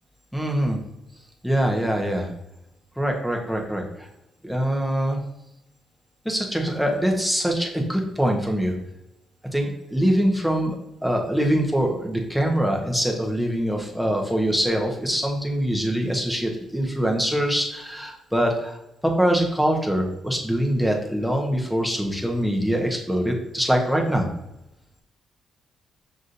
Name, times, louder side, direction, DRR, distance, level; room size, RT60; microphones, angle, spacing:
voice 1, 0.3-0.8 1.4-2.3 3.0-4.1 4.4-5.2 6.2-8.7 9.5-18.8 19.0-24.3, equal, ahead, 1 dB, 0.9 m, -23 dB
6.0 x 2.7 x 2.6 m, 0.88 s
cardioid pair, 90°, 0 cm